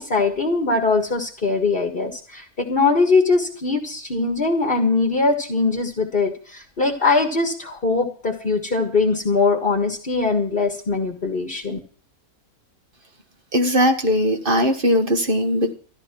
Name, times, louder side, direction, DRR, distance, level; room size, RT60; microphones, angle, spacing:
voice 1, 0.0-11.8, left 3 dB, 35° left, 5 dB, 1.7 m, -21 dB
voice 2, 13.5-15.7, equal, 35° right, 6 dB, 1.7 m, -19 dB
14.0 x 11.5 x 6.0 m, 0.43 s
omnidirectional pair, 1.6 m